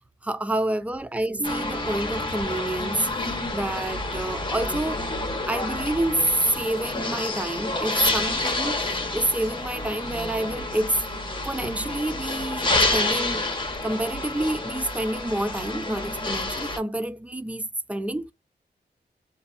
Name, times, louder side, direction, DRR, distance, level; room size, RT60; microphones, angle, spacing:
voice 1, 0.2-3.1 3.5-5.1 5.5-11.0 11.4-13.5 13.8-18.3, right 1 dB, 10° right, 0.4 m, -28 dB
sound 1, 1.4-16.8, left 2 dB, 30° left, 1.0 m, -29 dB
2.6 x 2.3 x 2.4 m
wide cardioid pair, 110°, 17 cm